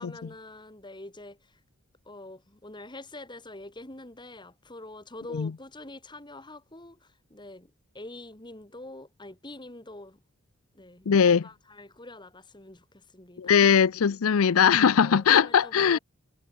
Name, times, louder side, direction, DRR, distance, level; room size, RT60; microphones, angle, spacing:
voice 1, 0.0-1.6 2.0-10.2 10.7-13.8 15.0-16.0, left 2 dB, 20° left, 2.9 m, -45 dB
voice 2, 11.1-11.5 13.4-16.0, left 7 dB, 85° left, 0.5 m, -20 dB
head